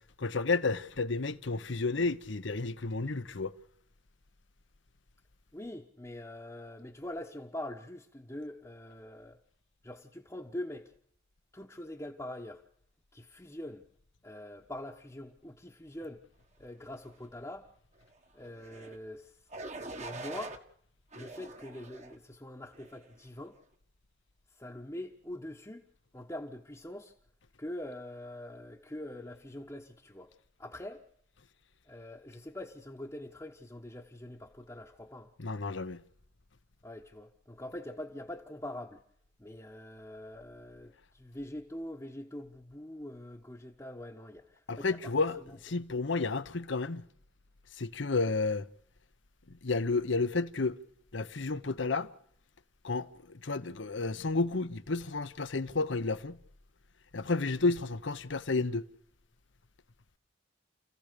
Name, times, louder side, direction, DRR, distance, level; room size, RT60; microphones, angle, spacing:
voice 1, 0.2-3.5 35.4-36.0 44.7-45.4 45.6-47.0 47.8-48.7 49.6-50.8 51.1-52.1 52.8-56.4 57.1-58.8, left 3 dB, 70° left, 1.0 m, -31 dB
voice 2, 5.5-9.4 9.8-10.9 11.5-12.6 13.1-13.8 14.2-16.2 16.6-17.7 18.3-19.4 20.0-20.6 21.1-23.6 24.6-25.8 26.1-27.1 27.6-30.3 30.6-31.1 31.9-35.3 36.8-39.0 39.4-45.1 45.4-45.6 48.1-48.3, left 1 dB, 15° left, 1.1 m, -44 dB
sound 1, 18.6-19.0 19.5-20.6 21.1-22.2 22.7-23.1, right 2 dB, 35° right, 1.4 m, -44 dB
29.0 x 15.5 x 6.8 m
head